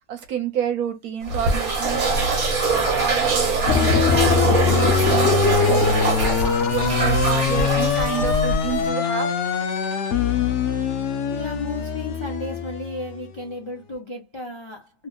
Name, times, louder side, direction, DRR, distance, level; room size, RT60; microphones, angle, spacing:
voice 1, 0.1-5.3 5.7-9.3, right 9 dB, 70° right, 1.2 m, -29 dB
sound 1, 1.2-8.9, right 3 dB, 50° right, 1.3 m, -23 dB
sound 2, 3.7-13.2, left 6 dB, 65° left, 0.8 m, -22 dB
voice 2, 11.2-15.1, left 2 dB, 40° left, 0.4 m, -34 dB
3.0 x 2.1 x 3.7 m
omnidirectional pair, 1.7 m